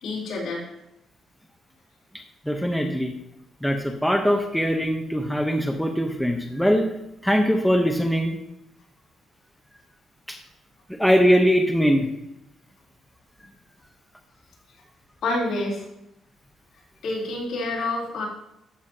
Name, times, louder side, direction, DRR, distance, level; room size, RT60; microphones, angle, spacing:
voice 1, 0.0-0.7 15.2-15.9 17.0-18.3, left 2 dB, 65° left, -5 dB, 3.8 m, -28 dB
voice 2, 2.5-3.1 3.6-6.9 7.2-8.4 10.3-10.4 10.9-12.1, equal, ahead, 3 dB, 1.0 m, -21 dB
14.0 x 7.2 x 2.9 m, 0.84 s
cardioid pair, 90°, 0 cm